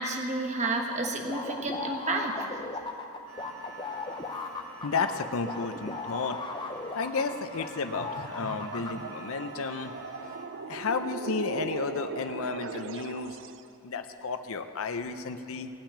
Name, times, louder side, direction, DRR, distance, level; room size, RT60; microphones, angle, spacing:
voice 1, 0.0-2.3, right 2 dB, 30° right, 2 dB, 1.2 m, -30 dB
sound 1, 0.6-7.7 7.9-8.9, left 3 dB, 20° left, 0.7 m, -37 dB
sound 2, 3.3-10.4, right 2 dB, 70° right, 2.3 m, -47 dB
voice 2, 4.8-6.4 6.9-9.9 10.6-13.4 13.8-15.7, left 4 dB, 70° left, 8 dB, 0.6 m, -32 dB
sound 3, 7.9-13.7, right 4 dB, 55° right, 0.5 m, -39 dB
17.5 x 5.8 x 8.7 m, 2.7 s
head